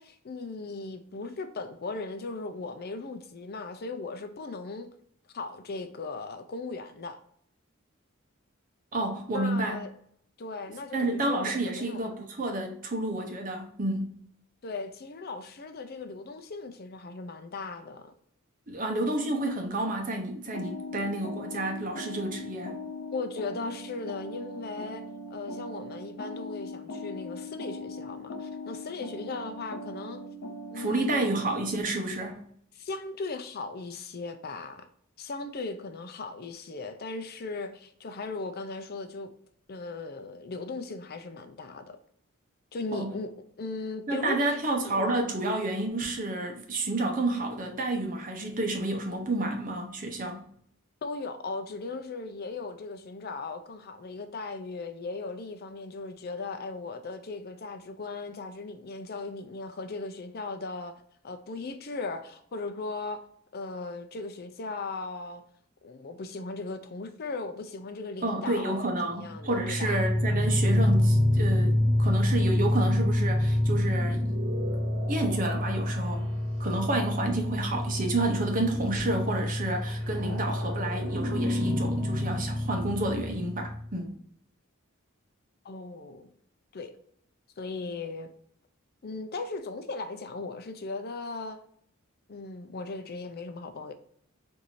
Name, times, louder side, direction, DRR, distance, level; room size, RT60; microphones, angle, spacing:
voice 1, 0.0-4.9 5.3-7.2 9.3-9.9 10.4-12.0 14.6-18.1 23.1-25.0 25.3-30.2 30.7-31.2 32.8-34.8 35.2-39.3 39.7-42.0 42.7-43.3 43.6-44.4 44.8-45.2 51.0-63.2 63.5-65.4 65.8-70.0 85.6-86.3 86.7-86.9 87.6-88.3 89.0-91.6 92.3-93.9, left 3 dB, 50° left, 0.5 m, -37 dB
voice 2, 8.9-9.8 10.9-14.1 18.7-22.8 30.7-32.5 42.9-43.1 44.1-50.4 68.2-74.3 75.1-76.3 76.6-84.1, right 2 dB, 40° right, 0.8 m, -30 dB
sound 1, 20.5-31.8, left 1 dB, 80° left, 0.8 m, -40 dB
sound 2, 69.3-83.9, left 1 dB, 65° right, 1.1 m, -27 dB
4.5 x 2.7 x 2.6 m
head